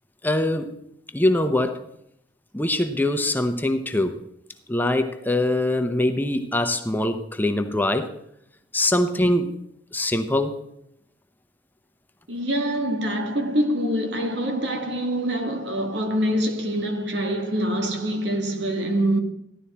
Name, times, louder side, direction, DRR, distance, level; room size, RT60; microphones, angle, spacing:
voice 1, 0.2-0.8 1.1-1.8 2.5-4.2 4.7-8.1 8.7-9.5 9.9-10.6, left 1 dB, 10° left, 0.7 m, -23 dB
voice 2, 12.3-19.2, equal, 85° right, 1.8 m, -25 dB
15.5 x 11.5 x 4.2 m
head